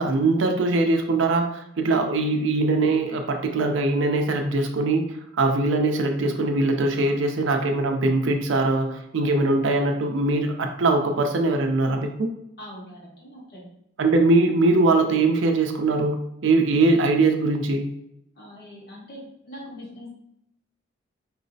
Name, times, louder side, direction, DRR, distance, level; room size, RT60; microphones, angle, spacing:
voice 1, 0.0-5.0 5.4-12.3 14.0-16.2 16.4-17.9, right 2 dB, 80° right, 4 dB, 0.4 m, -21 dB
voice 2, 12.6-13.7 18.3-20.1, equal, 55° left, -5 dB, 1.3 m, -42 dB
4.4 x 2.0 x 2.6 m, 0.78 s
head